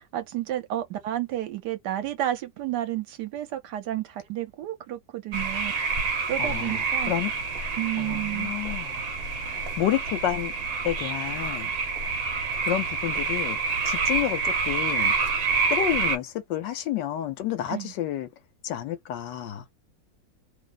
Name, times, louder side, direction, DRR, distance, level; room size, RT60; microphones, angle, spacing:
voice 1, 0.0-5.7 6.3-7.1 7.8-8.5 17.7-17.9, right 13 dB, 70° right, 1.2 m, -31 dB
sound 1, 5.3-16.2, right 4 dB, 50° right, 1.1 m, -28 dB
voice 2, 6.4-7.3 8.0-9.0 9.4-10.5 10.8-11.7 12.6-13.6 13.9-15.1 15.7-18.3 18.6-19.6, left 12 dB, 75° left, 1.3 m, -30 dB
3.1 x 2.0 x 3.8 m
omnidirectional pair, 2.0 m